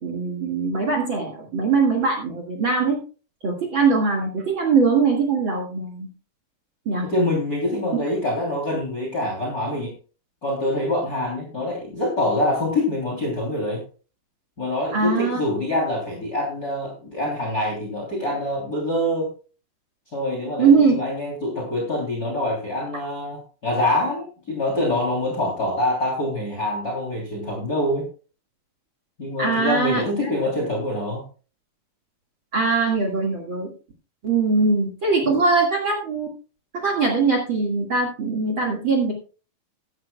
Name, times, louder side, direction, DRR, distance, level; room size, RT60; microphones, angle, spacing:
voice 1, 0.0-3.0 3.4-6.1 6.9-7.1 14.9-15.4 20.6-20.9 29.4-30.3 32.5-33.7 34.2-36.3 36.7-39.1, right 4 dB, 40° right, 2 dB, 2.1 m, -21 dB
voice 2, 7.0-9.9 10.4-13.8 14.6-19.3 20.1-28.1 29.2-31.2 35.2-35.3, left 1 dB, 25° left, 0 dB, 3.3 m, -25 dB
15.5 x 12.0 x 2.3 m, 0.35 s
omnidirectional pair, 4.2 m